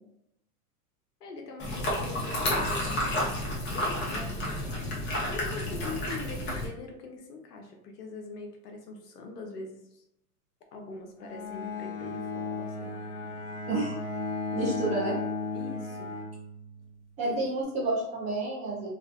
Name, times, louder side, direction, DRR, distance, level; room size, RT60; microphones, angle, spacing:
voice 1, 1.2-3.0 3.7-10.0 10.7-13.0 15.5-16.1 17.3-17.4, left 3 dB, 90° left, 3 dB, 0.8 m, -43 dB
sound 1, 1.6-6.7, left 1 dB, 25° left, 0.7 m, -31 dB
Bowed string instrument, 11.2-17.0, left 3 dB, 65° left, 1.1 m, -35 dB
voice 2, 13.7-14.0 14.5-15.2 17.2-18.9, right 2 dB, 20° right, -5 dB, 0.3 m, -30 dB
2.5 x 2.5 x 2.3 m, 0.83 s
hypercardioid pair, 120°, 46 cm